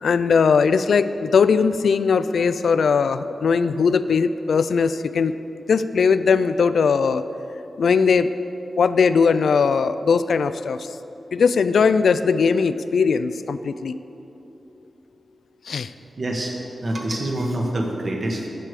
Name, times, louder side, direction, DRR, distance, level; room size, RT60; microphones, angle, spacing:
voice 1, 0.0-5.3 5.7-7.2 7.8-8.3 8.8-10.9 11.3-14.0 15.7-15.9, left 5 dB, 80° left, 12 dB, 0.3 m, -19 dB
voice 2, 16.2-16.5 16.8-18.5, right 1 dB, 35° right, 1 dB, 1.3 m, -26 dB
13.0 x 4.7 x 6.8 m, 3.0 s
wide cardioid pair, 155°, 0 cm